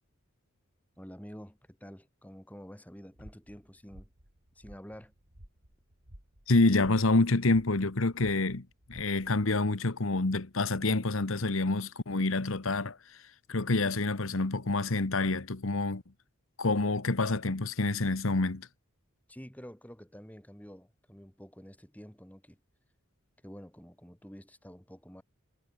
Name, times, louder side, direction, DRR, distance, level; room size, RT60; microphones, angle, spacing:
voice 1, 1.0-4.1 4.6-5.1 19.3-22.6 23.4-25.2, equal, 5° left, 3.8 m, -49 dB
sound 1, 3.1-9.5, equal, 65° right, 4.5 m, -55 dB
voice 2, 6.5-13.2 13.5-16.0 16.6-18.7, left 2 dB, 70° left, 1.3 m, -27 dB
head